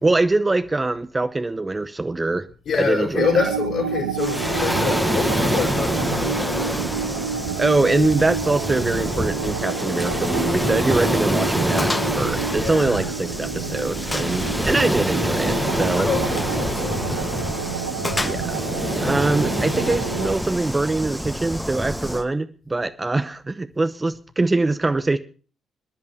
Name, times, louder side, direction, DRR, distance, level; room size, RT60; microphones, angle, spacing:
voice 1, 0.0-2.5 2.8-3.4 7.6-16.1 18.2-18.6 19.0-25.2, right 2 dB, 20° right, 0.9 m, -23 dB
voice 2, 2.7-7.0 12.4-13.1 15.9-17.4 18.8-19.2, left 5 dB, 55° left, 5.6 m, -27 dB
sound 1, 3.2-20.3, right 7 dB, 85° right, 0.6 m, -30 dB
Waves surf, 4.2-22.2, equal, ahead, 1.5 m, -26 dB
Gunshot gunfire, 10.0-10.2 10.5-10.6 11.1-11.2 11.8-12.2 12.5-13.4 14.1-14.6 16.3-16.6 18.0-18.8, left 2 dB, 20° left, 1.3 m, -30 dB
24.0 x 10.5 x 3.3 m
figure-of-eight pair, 45°, 0 cm